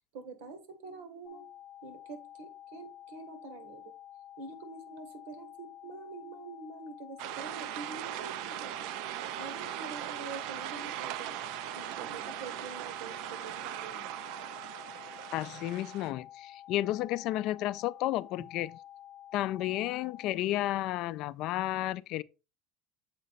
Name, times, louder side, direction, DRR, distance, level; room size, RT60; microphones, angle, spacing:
voice 1, 0.1-1.4 1.8-3.9 4.4-8.9 9.4-11.4 11.7-14.2, right 4 dB, 85° right, 1.5 m, -46 dB
sound 1, 1.2-20.3, left 11 dB, 85° left, 0.7 m, -50 dB
sound 2, 7.2-16.1, right 14 dB, 70° right, 0.3 m, -39 dB
voice 2, 15.3-18.7 19.3-22.2, left 15 dB, 55° left, 0.3 m, -32 dB
7.5 x 4.0 x 4.1 m
cardioid pair, 145°, 0 cm